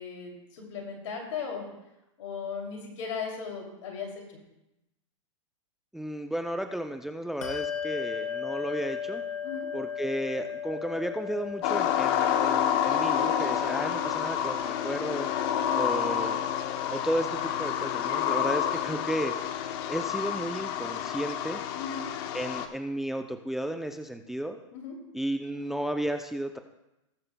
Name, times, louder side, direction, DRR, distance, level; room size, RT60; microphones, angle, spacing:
voice 1, 0.0-1.7 2.2-4.4 9.4-9.7 15.5-15.8 21.7-22.1 24.7-25.0, left 6 dB, 70° left, 1 dB, 2.7 m, -37 dB
voice 2, 5.9-9.2 9.7-15.3 15.7-16.4 16.9-19.3 19.9-21.6 22.3-24.6 25.1-26.6, right 1 dB, ahead, 6 dB, 0.4 m, -33 dB
Bell, 7.4-17.4, left 7 dB, 90° left, 1.3 m, -38 dB
sound 1, 11.6-22.7, left 9 dB, 50° left, 0.8 m, -29 dB
19.5 x 6.7 x 2.2 m, 0.93 s
hypercardioid pair, 125°, 17 cm